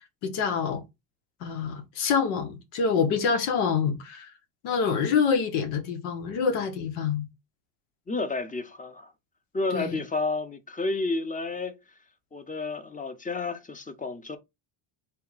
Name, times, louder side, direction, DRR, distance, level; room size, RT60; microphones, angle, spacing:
voice 1, 0.2-0.8 1.4-4.3 4.6-7.3 9.7-10.0, left 6 dB, 80° left, 1.2 m, -26 dB
voice 2, 8.1-9.1 9.5-11.7 12.3-14.4, left 3 dB, 15° left, 0.7 m, -31 dB
4.2 x 2.3 x 3.9 m
supercardioid pair, 75°, 50 cm